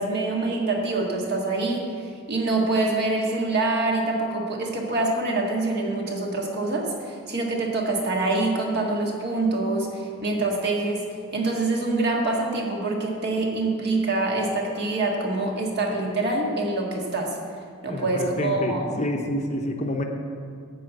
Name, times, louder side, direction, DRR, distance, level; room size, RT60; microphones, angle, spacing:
voice 1, 0.0-11.0 11.3-17.4 17.8-18.8, right 2 dB, 50° right, 0 dB, 1.6 m, -25 dB
voice 2, 17.9-20.0, left 1 dB, 30° left, 3 dB, 0.7 m, -28 dB
13.0 x 4.4 x 8.0 m, 2.2 s
head